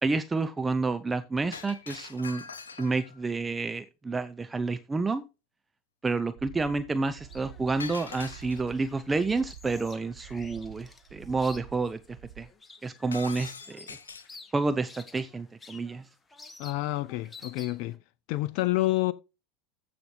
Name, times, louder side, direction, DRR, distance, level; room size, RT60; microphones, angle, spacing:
voice 1, 0.0-2.4 2.8-5.3 6.0-12.0 12.4-12.5 12.8-14.0 14.5-16.1, right 3 dB, 15° right, 0.7 m, -29 dB
Shatter, 1.5-3.2 7.8-8.9 13.1-14.4, left 5 dB, 85° left, 1.3 m, -42 dB
sound 1, 6.4-12.4, right 12 dB, 60° right, 1.7 m, -48 dB
sound 2, 7.1-18.0, left 4 dB, 15° left, 1.9 m, -52 dB
voice 2, 16.6-18.0 18.3-19.1, left 18 dB, 60° left, 0.5 m, -28 dB
15.0 x 6.0 x 3.3 m
hypercardioid pair, 85°, 0 cm